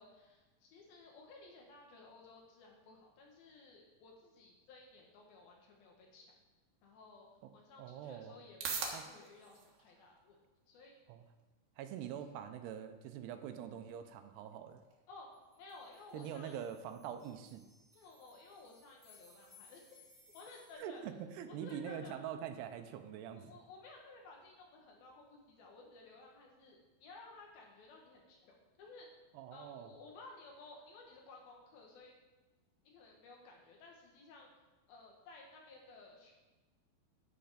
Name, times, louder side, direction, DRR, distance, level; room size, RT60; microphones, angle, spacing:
voice 1, 0.0-6.3 6.8-7.3 7.5-10.4 10.7-11.0 15.1-16.6 17.9-20.0 20.3-21.0 21.5-22.1 23.3-29.1 29.5-32.1 32.8-34.5 34.9-36.3, left 3 dB, 70° left, 0 dB, 3.2 m, -56 dB
sound 1, 7.1-24.1, right 5 dB, 65° right, 3.0 m, -52 dB
voice 2, 7.8-8.3 8.9-9.1 11.1-11.2 11.8-14.8 16.1-17.6 20.8-23.5 29.3-29.9, right 9 dB, 90° right, 8 dB, 2.8 m, -44 dB
sound 2, 15.3-20.7, left 4 dB, 5° left, 2.6 m, -64 dB
10.5 x 8.0 x 5.0 m, 1.1 s
omnidirectional pair, 4.8 m